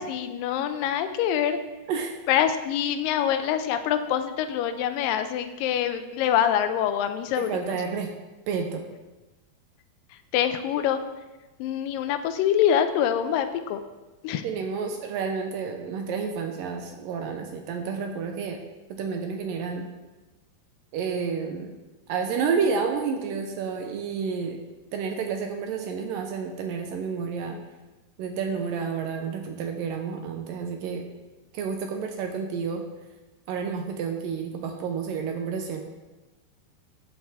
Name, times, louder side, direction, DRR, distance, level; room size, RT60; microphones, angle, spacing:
voice 1, 0.0-1.6 2.3-7.8 10.3-11.0 11.6-13.8 14.2-14.4, left 9 dB, 85° left, 8 dB, 2.0 m, -25 dB
voice 2, 7.4-8.1 8.5-8.8 14.4-18.6 19.0-19.9 20.9-21.7 22.1-24.6 24.9-27.6 28.2-31.0 31.5-32.8 33.5-35.8, right 5 dB, 75° right, 4 dB, 2.1 m, -30 dB
13.0 x 7.3 x 3.5 m, 1.1 s
omnidirectional pair, 4.5 m